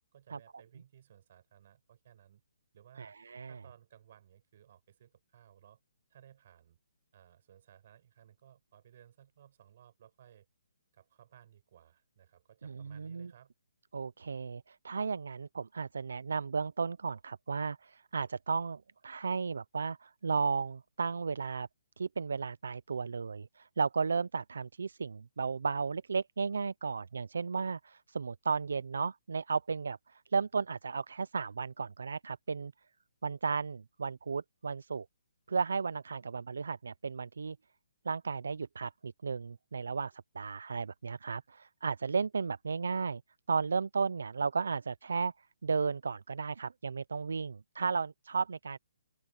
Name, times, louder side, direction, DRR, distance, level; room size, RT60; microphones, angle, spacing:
voice 1, 0.1-2.4 2.7-3.2 3.5-5.8 6.1-6.8 7.1-10.5 10.9-13.5, right 10 dB, 40° right, 5.3 m, -60 dB
voice 2, 3.0-3.5 12.6-13.3 13.9-21.7 22.0-32.7 33.2-35.1 35.5-37.6 38.1-43.2 43.5-48.8, right 5 dB, 75° right, 0.4 m, -34 dB
open air
hypercardioid pair, 165°, 0 cm